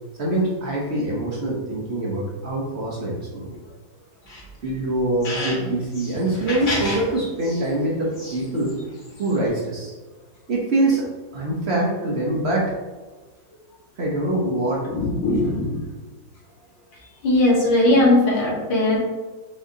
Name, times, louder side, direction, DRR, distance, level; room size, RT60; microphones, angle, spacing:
voice 1, 0.2-3.6 4.6-8.8 9.2-9.9 10.5-12.7 14.0-14.9, right 1 dB, 50° right, -3 dB, 0.8 m, -24 dB
sound 1, 4.2-5.5 5.9-7.7 8.1-9.5, left 1 dB, 50° left, 2.0 m, -32 dB
voice 2, 14.9-15.8 17.2-19.0, left 1 dB, 80° left, -5 dB, 2.2 m, -19 dB
5.5 x 3.6 x 2.7 m, 1.3 s
omnidirectional pair, 2.0 m